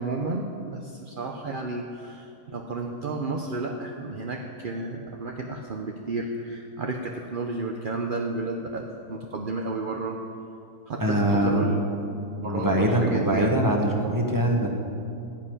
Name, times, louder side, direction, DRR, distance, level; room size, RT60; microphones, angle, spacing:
voice 1, 0.0-10.2 10.9-11.8 12.4-13.7, right 3 dB, 45° right, 2 dB, 0.6 m, -32 dB
voice 2, 11.0-11.6 12.4-14.7, right 1 dB, 10° right, 1 dB, 1.5 m, -23 dB
16.5 x 5.7 x 9.8 m, 2.6 s
omnidirectional pair, 1.8 m